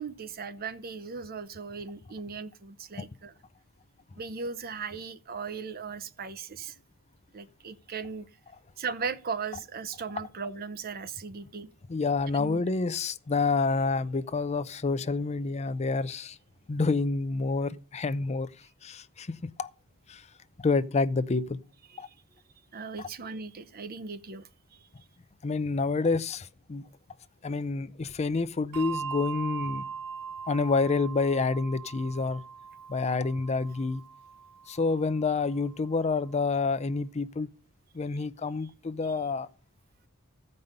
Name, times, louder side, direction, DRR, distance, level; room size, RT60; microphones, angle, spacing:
voice 1, 0.0-3.3 4.2-6.7 7.3-8.2 8.8-11.7 12.3-12.6 21.9-22.0 22.7-24.8, right 5 dB, 45° right, 0.7 m, -37 dB
voice 2, 11.9-16.4 16.7-18.5 18.8-19.7 20.1-20.2 20.6-21.6 22.0-22.1 23.0-23.1 25.4-26.9 27.4-29.8 30.5-32.4 32.9-34.0 34.7-37.5 37.9-39.5, left 4 dB, 30° left, 0.5 m, -28 dB
Bell, 28.7-35.6, right 6 dB, 85° right, 0.5 m, -40 dB
14.5 x 5.4 x 6.6 m
head